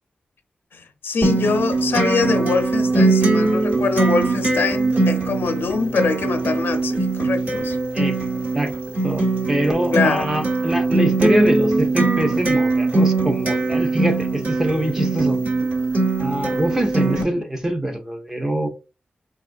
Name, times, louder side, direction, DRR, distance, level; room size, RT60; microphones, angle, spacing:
voice 1, 0.7-7.8 9.9-10.2, left 4 dB, 75° left, 0.5 m, -23 dB
Acoustic guitar, 1.2-17.2, right 3 dB, 45° right, 1.0 m, -21 dB
voice 2, 9.0-15.4 16.2-18.7, right 1 dB, 15° right, 0.5 m, -24 dB
3.7 x 2.3 x 2.5 m
wide cardioid pair, 155°, 4 cm